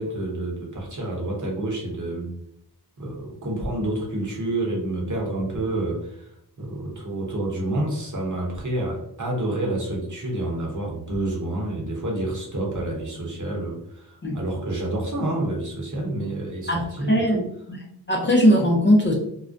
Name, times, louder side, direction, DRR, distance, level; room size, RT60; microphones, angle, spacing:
voice 1, 0.0-2.4 3.0-6.2 6.6-17.5, right 1 dB, 50° right, -1 dB, 0.9 m, -28 dB
voice 2, 16.7-17.4 17.7-17.8 18.1-19.1, equal, 30° left, -2 dB, 0.5 m, -19 dB
2.3 x 2.1 x 2.5 m, 0.75 s
cardioid pair, 50°, 40 cm